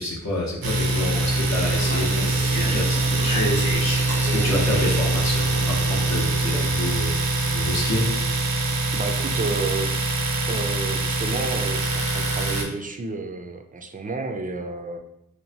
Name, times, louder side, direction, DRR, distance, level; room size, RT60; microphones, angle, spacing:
voice 1, 0.0-8.7, left 1 dB, 50° left, -3 dB, 0.7 m, -29 dB
sound 1, 0.6-6.9, equal, 20° left, 0.8 m, -41 dB
Domestic sounds home sounds, 0.6-12.6, right 2 dB, 90° right, 0.5 m, -23 dB
Speech, 1.5-5.4, left 1 dB, 90° left, 1.3 m, -33 dB
voice 2, 8.9-9.9 10.5-15.0, right 3 dB, 25° right, 5 dB, 0.3 m, -31 dB
2.9 x 2.1 x 2.7 m, 0.83 s
cardioid pair, 40°, 34 cm